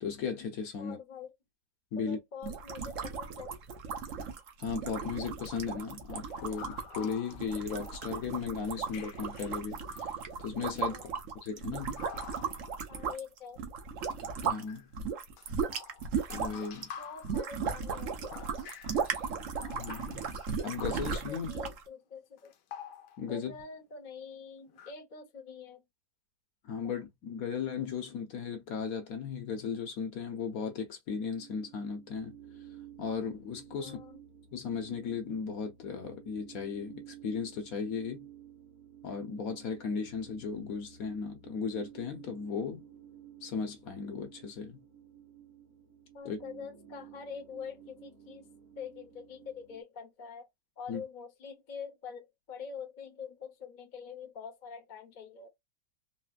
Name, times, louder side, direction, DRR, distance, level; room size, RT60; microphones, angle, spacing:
voice 1, 0.0-1.0 1.9-2.2 4.6-9.8 10.4-11.0 11.4-12.0 14.4-14.9 16.3-16.9 19.7-20.3 20.6-21.5 23.2-23.5 26.6-32.3 33.0-34.0 34.5-38.3 39.0-42.8 43.4-44.8 46.2-46.4 50.9-51.0, left 6 dB, 65° left, 1.2 m, -36 dB
voice 2, 0.8-1.3 1.9-3.5 10.9-11.1 12.9-13.6 17.0-18.5 21.3-22.5 23.3-25.8 26.8-27.0 33.8-34.2 46.1-48.5 48.8-50.5 50.8-55.5, left 6 dB, 40° left, 0.8 m, -45 dB
sound 1, 2.4-14.6 14.9-21.8, right 5 dB, 60° right, 1.1 m, -36 dB
sound 2, 6.3-8.4 8.9-10.4 12.0-13.0 14.7-14.9 15.4-19.3 19.6-21.4 22.4-23.4 24.7-24.9, left 8 dB, 85° left, 1.3 m, -49 dB
sound 3, 31.3-49.8, right 10 dB, 35° right, 0.9 m, -53 dB
4.1 x 2.0 x 2.3 m
omnidirectional pair, 1.8 m